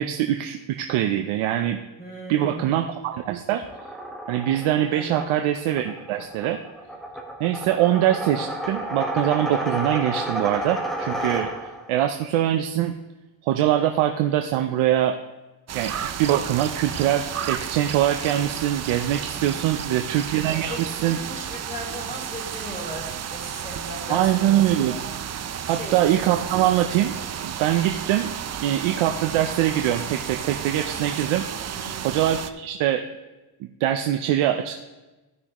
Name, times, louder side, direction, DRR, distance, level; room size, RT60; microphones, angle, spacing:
voice 1, 0.0-1.8 2.3-3.6 4.3-6.6 7.4-12.9 13.4-15.2 15.7-15.9 16.2-21.2 24.1-25.0 25.7-27.1 27.4-28.3 28.6-31.5 32.0-33.0 33.6-34.7, right 12 dB, 75° right, 5 dB, 0.7 m, -23 dB
voice 2, 2.0-2.7 4.9-5.3 19.3-19.8 20.4-25.0 25.6-26.1 31.7-32.2, equal, 20° left, -1 dB, 3.4 m, -38 dB
sound 1, 3.6-11.9, right 1 dB, ahead, 1.3 m, -31 dB
sound 2, 15.7-32.5, right 8 dB, 35° right, 0.5 m, -33 dB
15.0 x 6.2 x 3.0 m, 1.1 s
cardioid pair, 105°, 48 cm